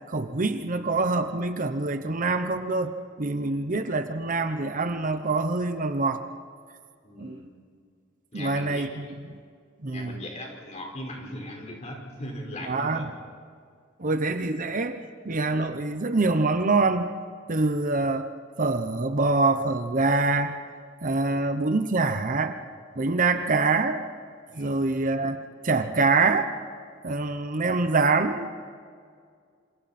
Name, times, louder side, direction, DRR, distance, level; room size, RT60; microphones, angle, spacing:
voice 1, 0.1-6.2 7.2-7.4 8.3-9.0 9.8-10.2 12.7-13.1 14.0-15.0 15.2-17.1 17.5-18.3 18.6-20.6 21.0-22.6 22.9-24.1 24.5-26.5 27.0-28.5, right 3 dB, 40° right, 8 dB, 1.0 m, -25 dB
voice 2, 7.0-7.5 8.3-9.1 9.9-13.0 21.2-21.4 24.5-24.8, left 1 dB, 35° left, 0 dB, 4.9 m, -39 dB
27.5 x 27.5 x 4.4 m, 2.1 s
head